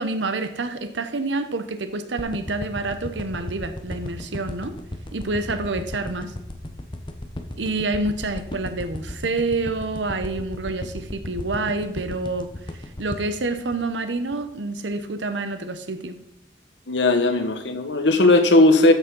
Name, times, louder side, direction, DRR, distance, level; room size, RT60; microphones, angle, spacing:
voice 1, 0.0-4.7 5.1-6.3 7.6-12.5 13.0-16.2, right 2 dB, 70° right, 10 dB, 0.9 m, -27 dB
sound 1, 2.2-14.5 14.9-15.0, left 1 dB, 25° left, 1.0 m, -35 dB
voice 2, 16.9-18.9, left 2 dB, 65° left, 7 dB, 1.3 m, -17 dB
13.5 x 6.3 x 5.4 m, 0.83 s
head